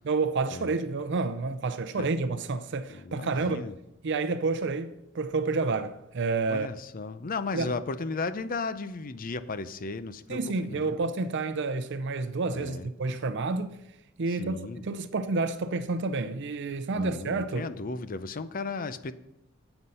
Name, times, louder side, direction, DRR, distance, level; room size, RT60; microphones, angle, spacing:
voice 1, 0.0-3.7 4.0-6.7 7.5-7.7 10.3-13.8 14.2-17.7, right 3 dB, 60° right, 0.6 m, -29 dB
voice 2, 2.9-3.7 6.5-11.0 12.5-12.9 14.3-14.8 17.0-19.1, left 3 dB, 45° left, 0.6 m, -35 dB
9.8 x 8.0 x 5.5 m
head